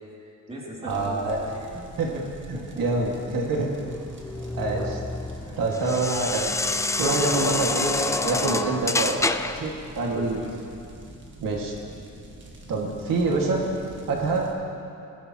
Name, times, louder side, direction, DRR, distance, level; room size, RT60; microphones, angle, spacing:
voice 1, 0.2-2.1 2.5-2.9 3.8-3.9 4.3-4.6 5.4-6.0 10.0-10.6, equal, 20° right, -5 dB, 2.7 m, -42 dB
sound 1, 0.8-14.5, right 1 dB, 35° right, 1.6 m, -45 dB
voice 2, 0.8-1.4 2.0-2.1 2.5-3.7 4.6-5.0 5.6-6.6 7.0-10.4 11.4-11.8 12.7-13.6 14.1-14.5, right 3 dB, 75° right, -1 dB, 1.9 m, -26 dB
sound 2, 3.8-9.7, left 3 dB, 10° left, 0.3 m, -28 dB
20.5 x 15.5 x 2.9 m, 2.6 s
wide cardioid pair, 160°, 33 cm